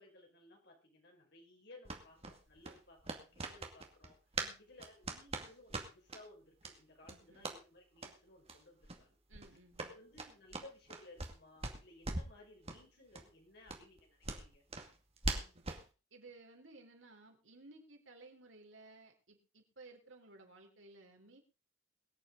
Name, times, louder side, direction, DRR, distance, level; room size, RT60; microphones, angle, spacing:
voice 1, 0.0-4.2 4.6-9.2 9.8-14.6, left 2 dB, 60° left, 1 dB, 5.5 m, -59 dB
sound 1, 1.8-4.5 4.8-6.2 6.6-6.7 7.0-7.6 8.0-8.1 8.5-8.6 8.8-9.0 9.3-11.4 11.6-12.4 12.7-12.8 13.1-13.2 13.7-15.8, right 3 dB, 30° right, 2.2 m, -41 dB
voice 2, 7.1-7.5 9.3-9.9 15.3-15.6 16.1-21.4, right 2 dB, 85° right, 3 dB, 3.8 m, -58 dB
23.0 x 8.7 x 3.9 m, 0.32 s
head